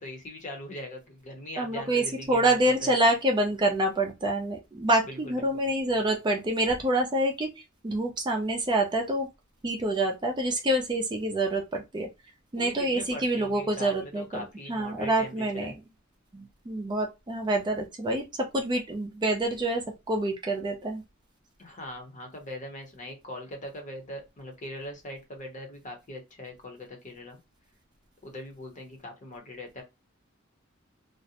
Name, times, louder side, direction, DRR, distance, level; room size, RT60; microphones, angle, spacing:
voice 1, 0.0-2.9 5.0-5.7 12.5-15.8 21.6-27.4 28.2-29.8, left 1 dB, 35° left, 0.7 m, -41 dB
voice 2, 1.6-7.5 7.8-9.3 9.6-12.1 12.5-15.7 16.3-18.2 18.5-19.8 20.1-21.0, right 1 dB, 20° right, 0.4 m, -27 dB
2.4 x 2.1 x 2.8 m
head